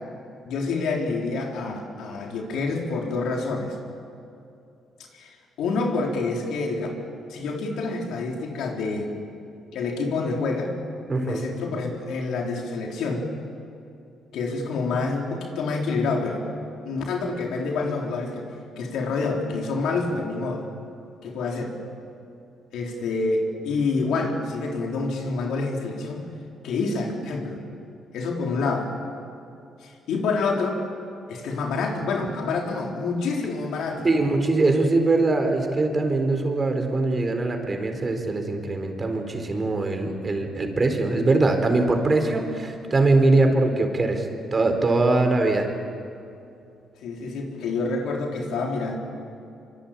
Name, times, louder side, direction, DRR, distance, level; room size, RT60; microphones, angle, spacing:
voice 1, 0.4-3.7 5.1-6.9 7.3-9.1 9.7-10.7 11.1-13.3 14.3-16.4 16.8-18.5 18.8-20.6 21.2-21.7 22.7-26.3 26.6-27.6 28.1-28.9 29.8-30.8 31.3-34.1 47.0-49.0, left 3 dB, 80° left, 0 dB, 4.1 m, -27 dB
voice 2, 11.1-11.4 34.0-45.7, right 2 dB, 30° right, 5 dB, 4.2 m, -22 dB
25.0 x 24.5 x 8.8 m, 2.6 s
cardioid pair, 90°, 0 cm